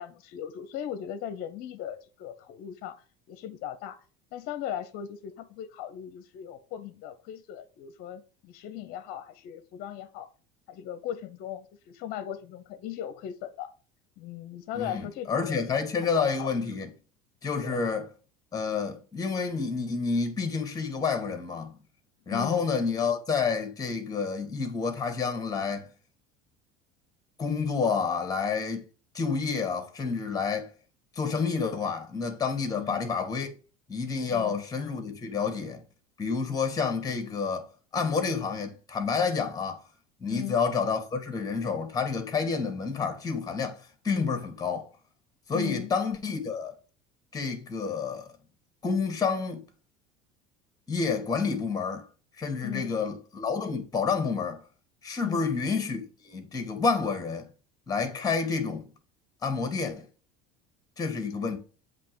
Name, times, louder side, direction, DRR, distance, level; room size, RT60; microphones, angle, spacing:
voice 1, 0.0-3.0 3.3-4.0 4.3-10.3 10.7-13.7 14.2-15.7 16.0-16.5 17.6-17.8 22.3-22.6 32.7-33.1 34.3-34.6 40.3-40.6 45.5-45.9 52.6-53.0 55.2-55.4, left 11 dB, 60° left, 0.8 m, -38 dB
voice 2, 14.8-16.9 17.4-18.1 18.5-21.8 22.3-25.9 27.4-28.9 29.1-30.7 31.2-33.5 33.9-35.8 36.2-37.7 37.9-39.8 40.2-44.9 45.5-46.7 47.3-48.3 48.8-49.7 50.9-52.1 52.4-54.6 55.0-57.5 57.9-58.9 59.4-60.0 61.0-61.6, left 5 dB, 20° left, 1.7 m, -29 dB
7.7 x 3.0 x 6.2 m
supercardioid pair, 115°, 18 cm